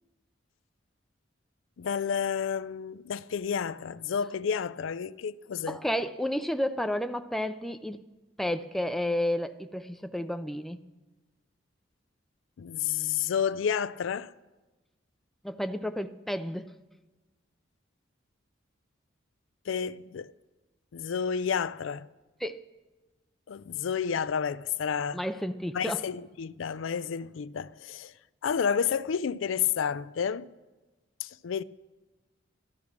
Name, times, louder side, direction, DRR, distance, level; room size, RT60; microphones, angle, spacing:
voice 1, 1.8-5.8 12.6-14.3 19.7-20.3 20.9-22.1 23.5-25.2 25.7-28.1 28.4-30.5 31.2-31.6, left 7 dB, 80° left, 0.4 m, -30 dB
voice 2, 5.7-8.0 8.4-10.8 15.4-16.7 22.4-22.6 25.1-26.0, left 1 dB, ahead, 0.4 m, -31 dB
14.5 x 12.0 x 6.0 m
head